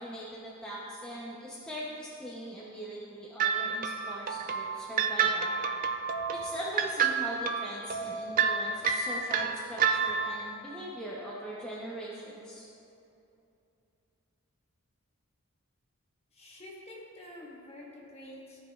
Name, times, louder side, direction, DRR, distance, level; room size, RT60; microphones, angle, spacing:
voice 1, 0.0-5.5 6.4-12.6, right 1 dB, 5° left, -7 dB, 0.7 m, -41 dB
sound 1, 3.4-10.5, right 6 dB, 40° right, 0.3 m, -29 dB
voice 2, 16.3-18.6, left 1 dB, 30° left, -4 dB, 1.2 m, -48 dB
14.5 x 5.0 x 2.4 m, 2.8 s
head